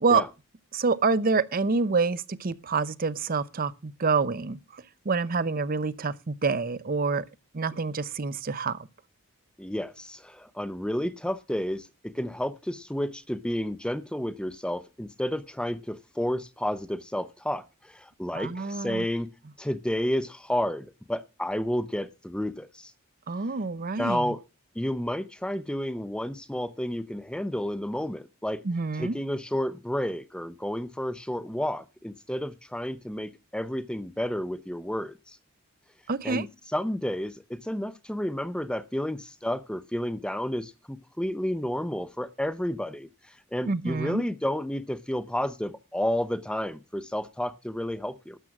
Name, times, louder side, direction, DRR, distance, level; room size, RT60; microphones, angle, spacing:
voice 1, 0.7-7.3 7.5-8.9 18.3-19.0 23.3-24.3 28.6-29.1 36.1-36.5 43.7-44.2, right 4 dB, 40° right, 0.6 m, -27 dB
voice 2, 9.6-19.3 19.6-22.9 24.0-24.4 24.8-28.6 28.9-35.4 36.2-36.5 36.7-48.4, equal, 5° left, 0.6 m, -31 dB
12.0 x 7.6 x 6.0 m
head